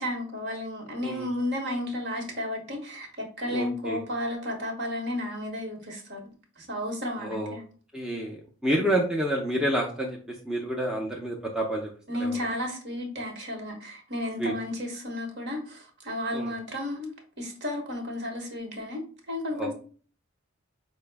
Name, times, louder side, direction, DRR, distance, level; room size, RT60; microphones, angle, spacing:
voice 1, 0.0-6.3 6.6-7.6 8.8-8.9 12.1-17.1 17.4-19.0 19.3-19.7, left 1 dB, 50° right, 1.0 m, -33 dB
voice 2, 3.5-4.0 7.2-7.6 7.9-10.2 10.5-11.9 12.2-12.4 14.4-14.5 16.3-16.5 19.6-19.7, right 1 dB, 5° right, 0.4 m, -29 dB
4.7 x 2.0 x 3.3 m
head